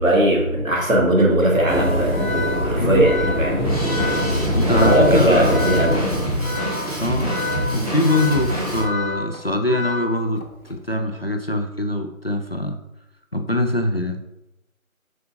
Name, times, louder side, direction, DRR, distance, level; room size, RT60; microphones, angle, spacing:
voice 1, 0.0-2.2 2.6-3.7 4.7-6.1, right 1 dB, 65° right, -1 dB, 2.1 m, -18 dB
Organ, 1.5-10.6, left 3 dB, 75° left, 1.2 m, -30 dB
sound 1, 1.7-6.7, equal, 10° left, 1.7 m, -24 dB
voice 2, 2.8-3.1 4.5-5.6 7.0-7.4 7.7-10.4 10.7-12.8 13.3-14.2, left 1 dB, 45° left, 6 dB, 0.5 m, -22 dB
Drum kit, 3.6-8.8, equal, 25° right, 1.3 m, -26 dB
7.6 x 5.9 x 2.6 m, 0.88 s
figure-of-eight pair, 170°, 43 cm